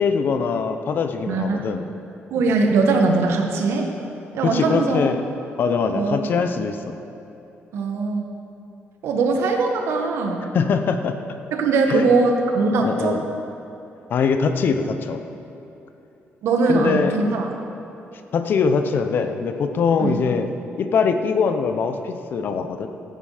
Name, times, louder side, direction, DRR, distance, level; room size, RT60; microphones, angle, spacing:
voice 1, 0.0-1.9 4.4-5.2 5.6-7.0 10.5-11.1 11.9-12.1 12.8-13.2 14.1-15.2 16.7-17.2 18.3-20.5 20.8-22.9, left 5 dB, 50° left, 7 dB, 0.7 m, -22 dB
voice 2, 1.3-1.7 2.3-3.9 4.3-5.0 5.9-6.2 7.7-8.3 9.0-10.4 11.5-13.1 16.4-17.5 20.0-20.2, right 3 dB, 80° right, 2 dB, 1.4 m, -20 dB
14.0 x 9.1 x 5.0 m, 2.9 s
cardioid pair, 170°, 4 cm